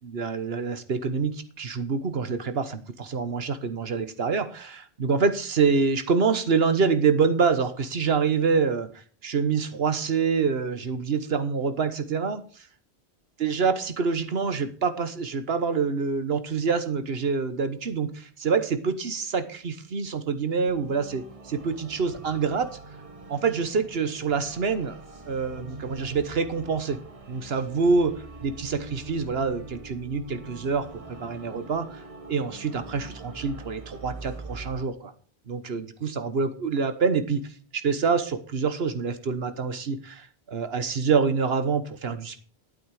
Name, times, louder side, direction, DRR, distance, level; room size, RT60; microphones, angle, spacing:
voice 1, 0.0-12.4 13.4-22.8 23.3-25.0 25.3-27.0 27.3-28.2 28.4-32.0 32.3-35.1 35.5-37.4 37.7-42.4, right 5 dB, 75° right, 11 dB, 1.4 m, -26 dB
sound 1, 20.6-34.9, right 3 dB, 35° right, 1.2 m, -43 dB
12.0 x 8.7 x 4.9 m, 0.42 s
omnidirectional pair, 1.0 m